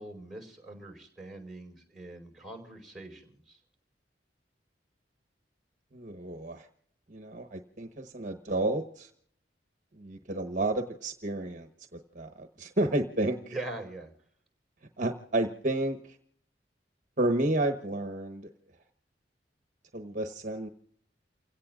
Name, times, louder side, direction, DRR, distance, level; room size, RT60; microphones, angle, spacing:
voice 1, 0.0-3.6 13.4-14.1, right 2 dB, ahead, 0 dB, 4.6 m, -42 dB
voice 2, 5.9-6.7 7.1-9.1 10.0-11.7 12.1-13.5 15.0-16.0 17.2-18.5 19.9-20.7, right 2 dB, 45° right, 6 dB, 1.1 m, -31 dB
29.0 x 17.0 x 2.5 m, 0.66 s
head